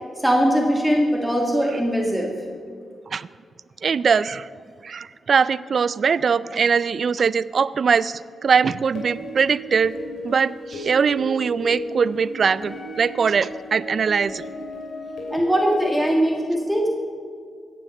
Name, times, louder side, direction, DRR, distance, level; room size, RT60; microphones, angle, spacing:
voice 1, 0.2-2.3 15.3-16.9, equal, 5° right, -1 dB, 1.9 m, -20 dB
voice 2, 3.8-4.5 4.8-10.0 10.2-14.4, right 6 dB, 60° right, 18 dB, 0.3 m, -21 dB
sound 1, 9.0-15.7, equal, 85° left, 2.7 m, -35 dB
17.0 x 7.2 x 5.5 m, 2.1 s
cardioid pair, 60°, 0 cm